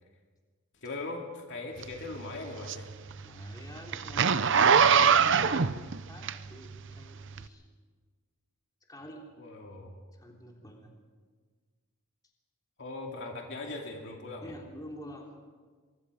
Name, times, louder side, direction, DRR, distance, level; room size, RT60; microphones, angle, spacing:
voice 1, 0.8-2.9 9.4-10.0 12.8-14.5, left 2 dB, 55° left, 1 dB, 2.7 m, -40 dB
Zipper (clothing), 1.8-6.8 7.3-7.4, right 6 dB, 55° right, 0.7 m, -23 dB
voice 2, 3.2-4.7 5.0-7.6 8.9-9.3 10.2-11.0 14.4-15.3, equal, 15° left, -1 dB, 3.4 m, -48 dB
23.5 x 23.5 x 5.0 m, 1.5 s
head